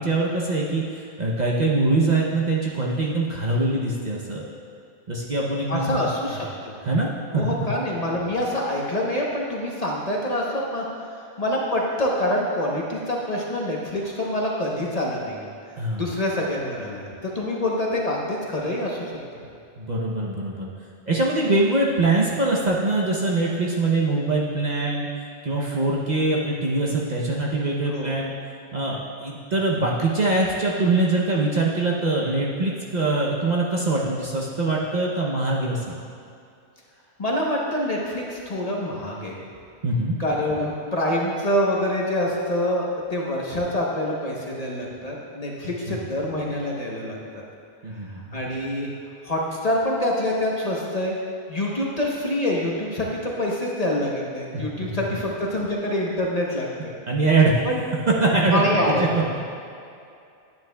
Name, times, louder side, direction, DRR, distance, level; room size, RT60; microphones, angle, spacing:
voice 1, 0.0-4.4 5.1-6.1 6.8-7.4 15.7-16.1 19.8-20.7 21.1-25.1 25.4-28.3 28.7-36.0 39.8-40.2 45.9-46.1 47.8-48.2 54.5-54.9 57.1-57.6 58.1-58.6 59.0-59.4, right 2 dB, 40° right, -3 dB, 0.8 m, -23 dB
voice 2, 5.7-6.7 7.3-10.8 11.4-15.5 16.0-19.1 27.9-28.1 37.2-39.4 40.2-42.8 43.1-47.4 47.9-48.0 48.3-48.9 49.2-51.2 51.5-56.9 57.6-57.8 58.5-59.0, left 1 dB, 35° left, -3 dB, 0.9 m, -26 dB
10.0 x 9.4 x 2.3 m, 2.5 s
omnidirectional pair, 1.2 m